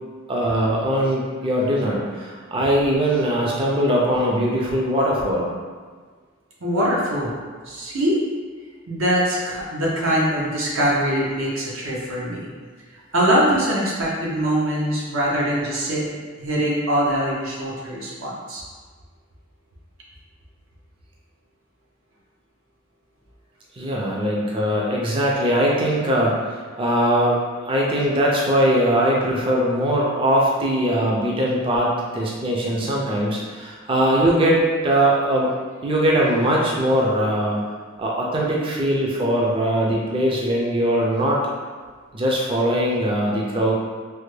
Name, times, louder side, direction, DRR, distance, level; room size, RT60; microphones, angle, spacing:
voice 1, 0.3-5.4 23.7-35.5 35.8-37.7 38.0-41.4 42.1-43.7, right 1 dB, 25° right, -3 dB, 0.4 m, -21 dB
voice 2, 6.6-7.3 7.7-8.2 8.9-12.5 13.1-18.6, equal, 80° right, -5 dB, 0.8 m, -23 dB
3.3 x 2.1 x 3.2 m, 1.6 s
head